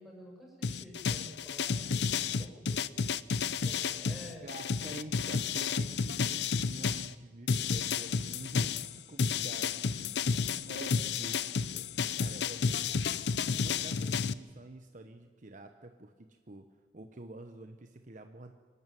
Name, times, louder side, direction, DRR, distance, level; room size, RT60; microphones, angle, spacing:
voice 1, 0.0-3.0 3.5-4.5, equal, ahead, -2 dB, 6.5 m, -50 dB
sound 1, 0.6-7.1 7.5-14.3, left 5 dB, 70° left, 0.6 m, -31 dB
voice 2, 4.4-11.4 11.7-12.7 13.5-16.7 16.9-18.5, right 2 dB, 45° right, 6 dB, 1.1 m, -48 dB
25.5 x 12.5 x 9.3 m, 1.4 s
head